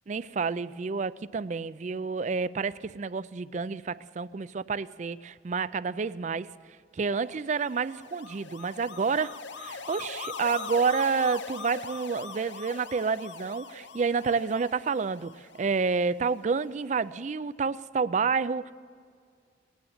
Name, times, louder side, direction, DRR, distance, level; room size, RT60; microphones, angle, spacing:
voice 1, 0.1-6.5 6.9-18.7, right 5 dB, 40° right, 0.4 m, -29 dB
sound 1, 7.4-16.7, left 5 dB, 70° left, 0.7 m, -42 dB
19.5 x 9.7 x 7.4 m
head